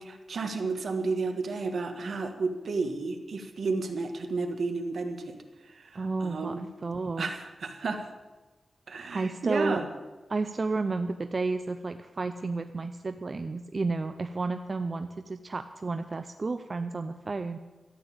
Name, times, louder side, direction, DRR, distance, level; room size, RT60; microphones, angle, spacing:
voice 1, 0.0-6.7 7.2-8.1 8.9-9.9, right 3 dB, 70° right, 6 dB, 1.6 m, -32 dB
voice 2, 5.9-7.3 9.1-9.8 10.3-17.6, right 3 dB, 40° right, 9 dB, 0.5 m, -31 dB
13.0 x 9.2 x 8.7 m, 1.2 s
wide cardioid pair, 125°, 0 cm